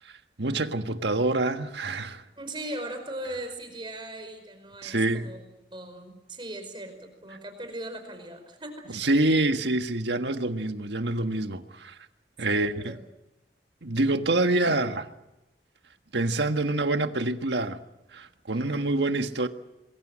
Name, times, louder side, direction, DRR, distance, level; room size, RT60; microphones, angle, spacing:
voice 1, 0.4-2.2 4.8-5.3 8.9-12.0 12.4-13.0 13.8-15.1 16.1-17.8 18.1-19.5, right 2 dB, 80° right, 1.5 m, -26 dB
voice 2, 2.4-5.4 5.7-9.1 12.5-13.0 18.5-18.9, right 1 dB, 25° right, 5.0 m, -39 dB
27.5 x 22.0 x 6.3 m
head